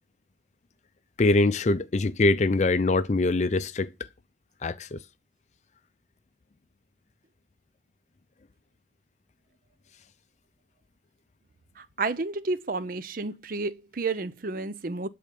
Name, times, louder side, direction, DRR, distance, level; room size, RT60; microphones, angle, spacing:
voice 1, 1.2-3.9 4.6-5.0, left 2 dB, 40° left, 0.5 m, -23 dB
voice 2, 11.8-15.1, right 3 dB, 50° right, 0.6 m, -31 dB
12.0 x 4.3 x 5.3 m
head